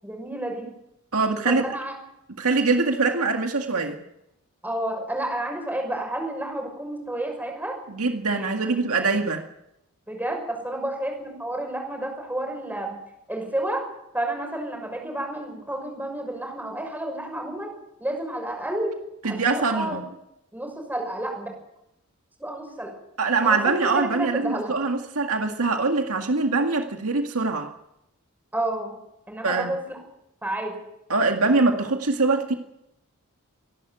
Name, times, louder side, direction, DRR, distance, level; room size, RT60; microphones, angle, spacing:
voice 1, 0.0-0.7 1.4-1.9 4.6-7.8 8.3-9.2 10.1-13.0 13.3-13.8 14.1-17.7 18.0-18.9 19.2-20.0 20.5-21.5 22.4-22.9 23.4-24.8 28.5-28.9 29.3-30.0 30.4-30.7, right 1 dB, 10° right, 2 dB, 6.4 m, -30 dB
voice 2, 1.1-1.6 2.4-4.0 7.9-9.4 19.2-20.0 23.2-27.7 29.4-29.7 31.1-32.5, right 3 dB, 75° right, 4 dB, 2.0 m, -23 dB
25.0 x 12.0 x 9.3 m, 0.85 s
head